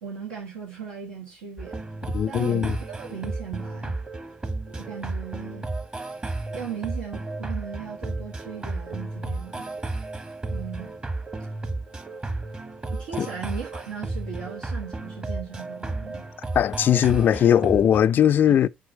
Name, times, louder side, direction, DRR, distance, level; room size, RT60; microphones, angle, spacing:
voice 1, 0.0-1.8 2.2-4.0 4.7-5.7 6.5-9.7 10.5-10.9 12.9-16.3 18.5-18.6, right 7 dB, 75° right, 1.4 m, -37 dB
sound 1, 1.6-18.0, right 2 dB, 25° right, 1.2 m, -33 dB
voice 2, 2.1-2.8 13.2-13.3 16.5-18.7, left 10 dB, 45° left, 0.4 m, -19 dB
7.5 x 4.7 x 4.1 m
figure-of-eight pair, 50°, 5 cm